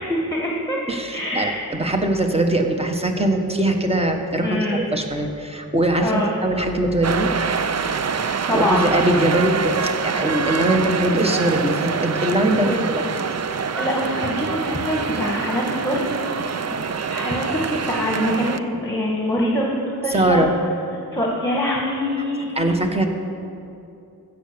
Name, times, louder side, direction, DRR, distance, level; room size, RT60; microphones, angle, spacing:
voice 1, 0.0-0.8 1.1-1.6 4.4-4.8 6.0-6.3 8.2-8.9 12.6-12.9 13.8-16.0 17.1-20.5 21.1-22.7, left 1 dB, 10° left, -2 dB, 1.7 m, -24 dB
voice 2, 0.9-1.5 1.8-7.3 8.2-13.0 20.1-20.5 22.6-23.1, right 1 dB, 15° right, 3 dB, 1.4 m, -21 dB
sound 1, 7.0-18.6, right 6 dB, 45° right, 0.5 m, -25 dB
15.5 x 7.0 x 6.9 m, 2.7 s
wide cardioid pair, 75°, 37 cm